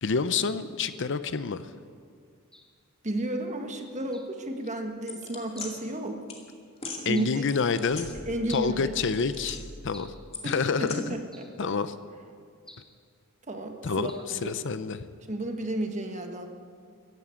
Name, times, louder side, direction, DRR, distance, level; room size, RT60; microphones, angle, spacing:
voice 1, 0.0-1.6 7.1-8.2 8.5-10.1 10.4-11.2 11.6-11.9 13.8-15.0, left 5 dB, 60° left, 12 dB, 0.7 m, -28 dB
sound 1, 2.5-2.8 4.1-4.4 5.5-5.8 7.1-7.4 8.5-8.8 9.9-10.3 11.3-11.6 12.7-13.0 14.1-14.4, left 1 dB, 5° left, 1.4 m, -51 dB
voice 2, 3.0-6.2 7.1-7.4 8.3-8.9 10.4-11.5 13.5-14.6 15.3-16.5, right 1 dB, 35° right, 4 dB, 1.5 m, -32 dB
sound 2, 5.1-5.7 6.3-6.4 6.8-7.0 7.5-8.6 8.9-9.8 10.3-11.0, left 4 dB, 30° left, 2.4 m, -40 dB
14.5 x 11.0 x 8.5 m, 2.2 s
head